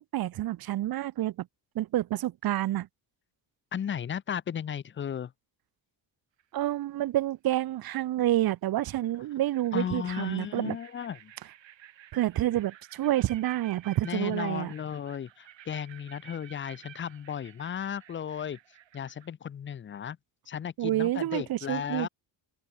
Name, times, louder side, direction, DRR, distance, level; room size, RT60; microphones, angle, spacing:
voice 1, 0.0-1.5 1.8-2.9 6.5-10.8 12.1-14.7 20.8-22.1, right 14 dB, 50° right, 0.5 m, -28 dB
voice 2, 3.7-5.3 9.7-11.3 14.0-20.2 20.5-22.1, left 8 dB, 25° left, 0.4 m, -35 dB
Fryers Forest Kookaburra's, 6.4-6.8 8.3-8.4 8.8-19.3, right 11 dB, 70° right, 6.1 m, -53 dB
wide cardioid pair, 175°, 47 cm